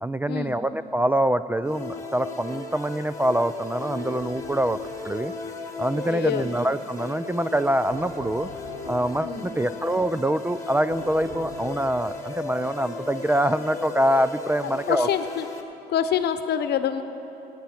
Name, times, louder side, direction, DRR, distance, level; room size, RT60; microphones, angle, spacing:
voice 1, 0.0-4.8 5.0-5.3 5.8-8.5 8.9-15.1, right 1 dB, 10° right, 13 dB, 0.3 m, -25 dB
sound 1, 1.6-15.6, left 4 dB, 15° left, 1.7 m, -37 dB
sound 2, 4.2-4.9 7.9-9.2 10.9-12.1, equal, 55° right, 3.7 m, -42 dB
voice 2, 6.0-6.5 9.2-9.5 14.9-15.5 15.9-17.0, left 9 dB, 70° left, 10 dB, 0.9 m, -26 dB
25.0 x 9.2 x 4.4 m, 3.0 s
cardioid pair, 85°, 18 cm